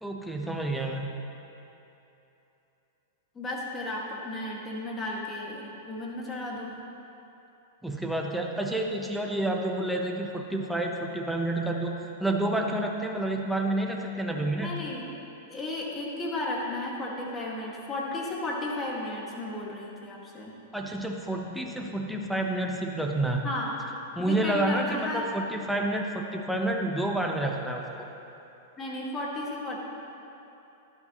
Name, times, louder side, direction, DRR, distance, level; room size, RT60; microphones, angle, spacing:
voice 1, 0.0-1.1 7.8-11.9 12.2-14.7 20.7-23.5 24.1-28.1, right 1 dB, ahead, 0 dB, 1.1 m, -29 dB
voice 2, 3.3-6.7 14.6-15.1 15.5-20.5 23.4-23.7 24.2-25.3 28.8-29.8, left 2 dB, 20° left, -3 dB, 2.2 m, -34 dB
12.0 x 11.5 x 3.2 m, 3.0 s
hypercardioid pair, 115°, 0 cm